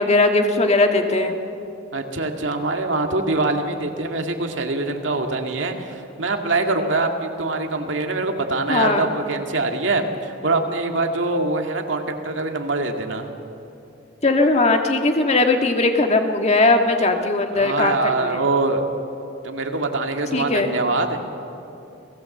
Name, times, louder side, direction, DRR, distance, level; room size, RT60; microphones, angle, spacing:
voice 1, 0.0-1.4 8.7-9.1 14.2-18.4 20.3-20.7, left 2 dB, 35° left, 4 dB, 1.8 m, -19 dB
voice 2, 1.9-13.3 17.5-18.8 19.4-21.2, right 2 dB, 65° right, 4 dB, 2.1 m, -24 dB
29.5 x 19.0 x 7.9 m, 2.8 s
head